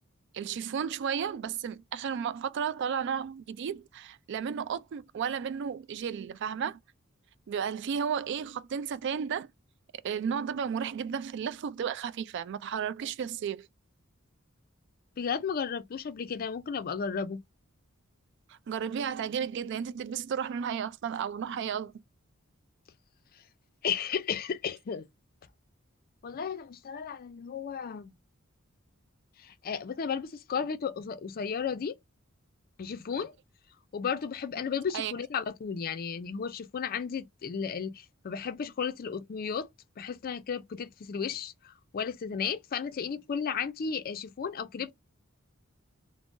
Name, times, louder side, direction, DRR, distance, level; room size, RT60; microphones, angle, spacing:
voice 1, 0.3-6.8 7.5-9.5 10.0-13.7 18.5-21.9 34.9-35.1, right 7 dB, 60° right, 0.3 m, -33 dB
voice 2, 15.2-17.4 23.8-25.0 26.2-28.1 29.4-32.0 32.8-33.3 33.9-39.7 40.0-44.9, left 6 dB, 45° left, 0.4 m, -34 dB
2.5 x 2.0 x 3.6 m
head